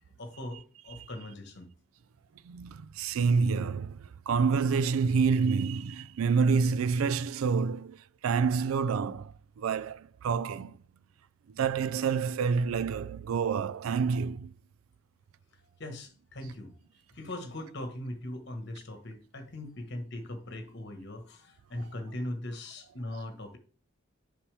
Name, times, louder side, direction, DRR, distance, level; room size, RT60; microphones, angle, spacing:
voice 1, 0.2-1.7 15.6-16.7 17.1-23.6, left 1 dB, 55° left, 1.5 m, -40 dB
voice 2, 2.4-10.8 11.5-14.5, right 5 dB, 80° right, 0.4 m, -28 dB
7.1 x 5.6 x 3.4 m
head